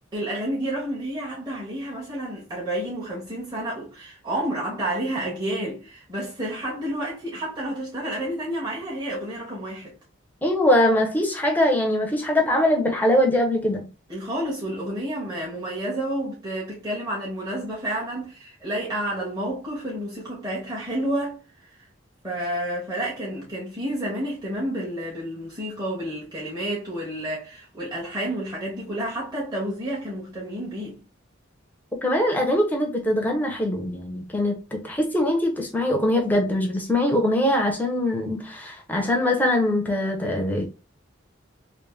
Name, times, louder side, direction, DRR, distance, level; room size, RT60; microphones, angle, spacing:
voice 1, 0.1-9.9 14.1-21.4 22.2-31.0, right 1 dB, 20° right, 1.5 m, -30 dB
voice 2, 10.4-13.9 32.0-40.7, left 1 dB, 10° left, 0.8 m, -22 dB
3.3 x 3.0 x 3.2 m
head